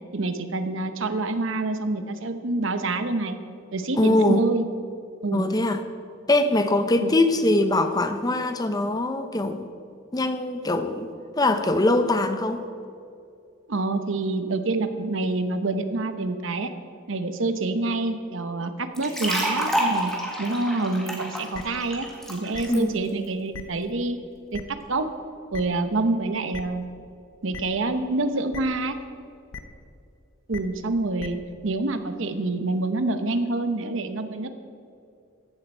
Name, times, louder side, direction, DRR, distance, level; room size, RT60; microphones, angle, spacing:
voice 1, 0.1-3.4 3.7-4.6 5.2-5.5 7.0-7.2 13.7-16.7 17.1-20.1 20.4-24.2 24.5-25.1 25.5-26.8 27.4-28.9 30.5-31.4 31.6-34.5, right 2 dB, 60° right, 9 dB, 0.9 m, -27 dB
voice 2, 4.0-4.4 5.3-5.8 6.3-9.7 10.1-11.1 11.4-12.6 22.7-23.0, left 2 dB, 20° left, 9 dB, 0.6 m, -22 dB
sound 1, 18.9-22.8, right 1 dB, ahead, 1.7 m, -28 dB
sound 2, 21.5-21.6 22.5-22.6 23.5-23.6 24.5-24.6 25.5-25.6 26.5-26.6 27.5-27.6 28.5-28.6 29.5-29.6 30.5-30.6 31.2-31.3, left 5 dB, 70° left, 0.9 m, -37 dB
15.0 x 11.0 x 4.5 m, 2.5 s
head